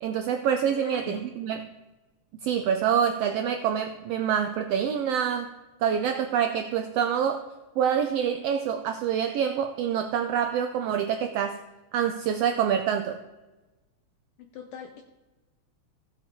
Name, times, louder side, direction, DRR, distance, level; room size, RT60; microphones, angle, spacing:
voice 1, 0.0-1.7 2.4-5.5 5.8-7.4 7.8-11.6 11.9-13.2, right 8 dB, 80° right, 7 dB, 1.4 m, -26 dB
voice 2, 0.7-1.2 14.4-15.0, left 7 dB, 75° left, 5 dB, 1.4 m, -42 dB
15.5 x 7.4 x 3.6 m, 1.2 s
omnidirectional pair, 3.4 m